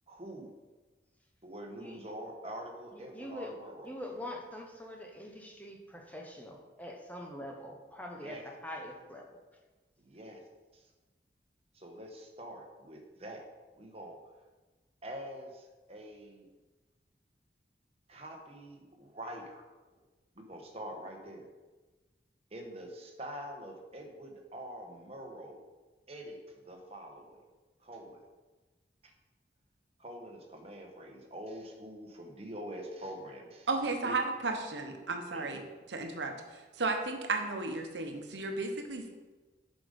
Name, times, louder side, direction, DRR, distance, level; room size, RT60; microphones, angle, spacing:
voice 1, 0.1-0.5 1.4-3.9 8.2-8.5 10.0-10.4 10.7-10.8 11.7-13.5 13.8-14.2 15.0-16.4 18.1-19.6 20.3-21.5 22.5-25.6 26.1-27.4 27.8-28.2 29.0-29.1 30.0-33.7 34.0-34.1 35.3-35.7, right 1 dB, 35° right, 2 dB, 1.1 m, -45 dB
voice 2, 1.8-2.1 2.9-3.6 3.8-9.2, left 1 dB, 10° left, 1 dB, 0.8 m, -44 dB
voice 3, 33.7-39.1, right 3 dB, 90° right, 4 dB, 1.0 m, -34 dB
7.9 x 5.1 x 5.2 m, 1.2 s
head